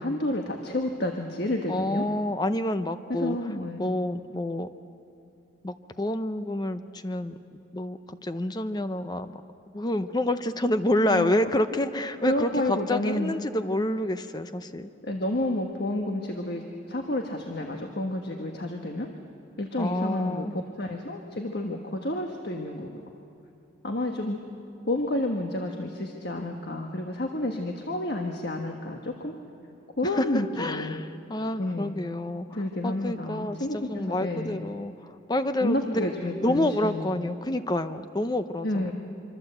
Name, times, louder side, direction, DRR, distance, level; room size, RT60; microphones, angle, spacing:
voice 1, 0.0-2.0 3.1-3.9 11.1-11.3 12.2-13.3 15.0-19.1 19.6-23.0 23.8-24.4 24.9-29.4 30.0-31.0 31.6-31.9 32.5-34.6 35.6-37.2 38.6-38.9, left 1 dB, 55° left, 3 dB, 1.4 m, -30 dB
voice 2, 1.7-3.4 3.8-4.7 5.6-7.4 7.7-9.4 9.7-14.9 19.8-20.5 30.2-30.3 30.6-32.5 32.8-36.1 36.4-38.9, left 1 dB, 20° left, 10 dB, 0.6 m, -28 dB
25.5 x 25.0 x 8.0 m, 2.8 s
head